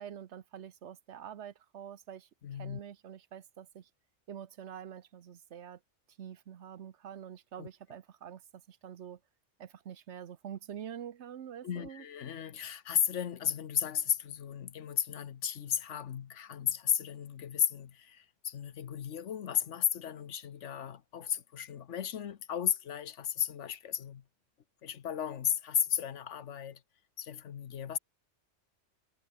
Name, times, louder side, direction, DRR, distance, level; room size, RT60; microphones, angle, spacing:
voice 1, 0.0-3.9 4.3-5.8 6.2-8.4 8.7-9.2 9.6-12.0, right 9 dB, 75° right, 1.2 m, -46 dB
voice 2, 2.4-2.8 7.6-7.7 11.6-24.2 24.8-26.8 27.2-28.0, left 9 dB, 85° left, 1.3 m, -34 dB
omnidirectional pair, 1.2 m